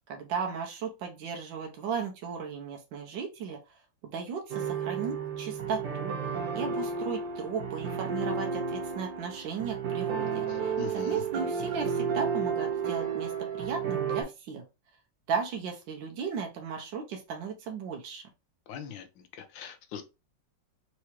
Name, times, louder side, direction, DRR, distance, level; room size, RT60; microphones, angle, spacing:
voice 1, 0.1-3.6 4.0-14.6 15.3-18.2, right 6 dB, 80° right, 1.5 m, -36 dB
sound 1, 4.5-14.2, right 6 dB, 65° right, 1.6 m, -32 dB
voice 2, 10.5-11.2 18.7-20.0, left 8 dB, 85° left, 1.4 m, -42 dB
4.7 x 3.0 x 3.0 m
omnidirectional pair, 2.0 m